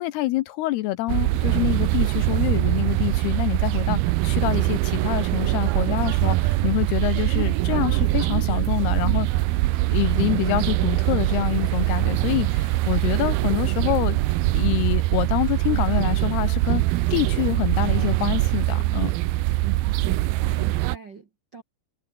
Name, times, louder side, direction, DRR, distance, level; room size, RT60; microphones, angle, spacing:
voice 1, 0.0-9.4 9.9-14.2 14.5-16.8 17.1-19.1, left 17 dB, 80° left, 2.5 m, -26 dB
sound 1, 1.1-21.0, right 18 dB, 80° right, 2.2 m, -23 dB
voice 2, 20.0-21.6, right 5 dB, 55° right, 1.2 m, -42 dB
omnidirectional pair, 5.2 m